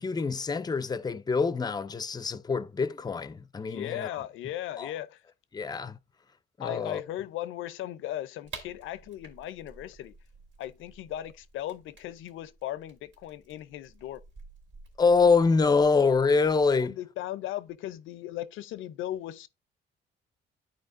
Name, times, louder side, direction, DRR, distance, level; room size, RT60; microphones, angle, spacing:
voice 1, 0.0-4.1 4.8-4.9 5.5-6.0 6.6-7.0 15.0-17.0, left 4 dB, 20° left, 0.5 m, -25 dB
voice 2, 3.6-5.2 6.6-10.1 10.6-14.2 16.8-19.5, left 13 dB, 85° left, 0.5 m, -37 dB
sound 1, 8.4-16.9, right 3 dB, 75° right, 2.5 m, -51 dB
11.5 x 4.4 x 2.5 m
cardioid pair, 90°, 20 cm